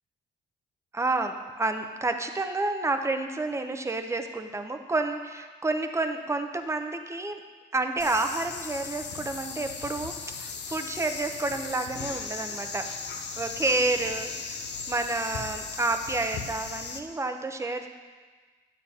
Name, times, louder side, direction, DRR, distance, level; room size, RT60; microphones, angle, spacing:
voice 1, 0.9-7.4 7.7-12.9 13.4-14.6 14.9-17.9, right 2 dB, 15° right, 6 dB, 0.6 m, -29 dB
sound 1, 8.0-17.0, left 5 dB, 60° left, 0.8 m, -37 dB
9.5 x 8.4 x 2.8 m, 1.4 s
cardioid pair, 90°, 20 cm